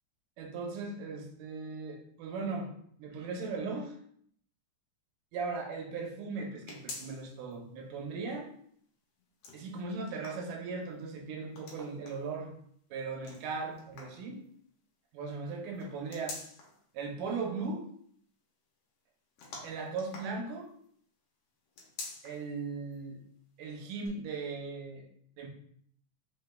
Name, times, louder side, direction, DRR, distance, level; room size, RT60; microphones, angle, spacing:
voice 1, 0.4-2.7 3.0-4.0 5.3-8.5 9.5-12.5 12.9-14.4 15.1-16.4 16.9-17.9 19.6-20.7 22.2-23.2 23.6-25.1 25.4-25.5, right 4 dB, 80° right, 0 dB, 2.2 m, -38 dB
sound 1, 6.7-7.5 7.9-8.0 9.2-10.9 11.5-12.3 13.2-14.3 15.7-16.8 19.4-20.9 21.7-22.5 22.9-23.0 24.0-24.1, left 3 dB, 85° left, 1.3 m, -47 dB
5.1 x 3.2 x 2.2 m, 0.65 s
omnidirectional pair, 3.8 m